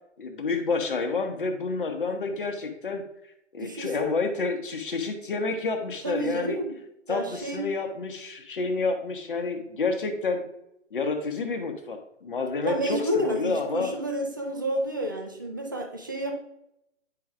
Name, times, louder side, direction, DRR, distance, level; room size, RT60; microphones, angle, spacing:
voice 1, 0.2-3.0 3.5-6.6 7.1-10.4 10.9-13.9, left 4 dB, 45° left, 6 dB, 1.1 m, -29 dB
voice 2, 3.6-4.1 6.0-6.7 7.1-7.7 12.6-16.3, right 1 dB, 15° right, 1 dB, 0.5 m, -30 dB
9.6 x 5.1 x 2.4 m, 0.81 s
figure-of-eight pair, 140°, 37 cm